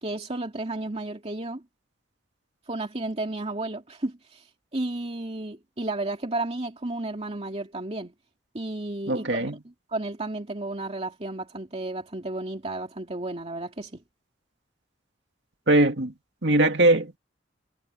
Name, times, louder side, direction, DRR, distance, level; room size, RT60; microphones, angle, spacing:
voice 1, 0.0-1.6 2.7-8.1 8.5-14.0, right 2 dB, 35° right, 2.5 m, -33 dB
voice 2, 9.1-9.6 15.7-16.1 16.4-17.2, right 2 dB, 65° right, 2.5 m, -21 dB
head